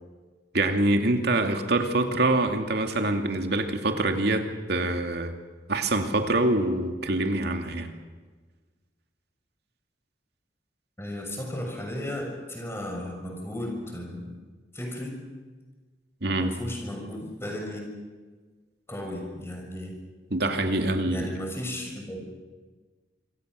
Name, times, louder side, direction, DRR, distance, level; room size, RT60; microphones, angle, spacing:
voice 1, 0.5-5.3 5.7-7.9 16.2-16.5 20.3-21.4, right 2 dB, 65° right, 5 dB, 2.6 m, -25 dB
voice 2, 11.0-14.3 14.7-15.2 16.3-17.8 18.9-20.0 21.1-22.2, left 1 dB, 15° left, 1 dB, 6.4 m, -35 dB
26.5 x 24.5 x 6.6 m, 1.4 s
head